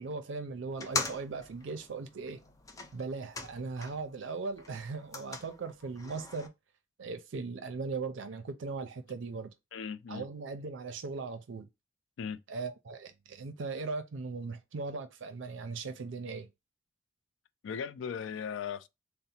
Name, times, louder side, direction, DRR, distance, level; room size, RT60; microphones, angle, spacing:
voice 1, 0.0-2.4 2.9-6.5 7.0-9.5 10.1-11.7 12.5-16.5, right 4 dB, 85° right, 0.5 m, -38 dB
sound 1, 0.7-4.1 4.5-6.5, left 3 dB, 20° left, 0.5 m, -41 dB
voice 2, 9.7-10.3 12.2-12.4 17.6-18.9, left 7 dB, 80° left, 0.3 m, -37 dB
3.9 x 2.0 x 4.2 m
head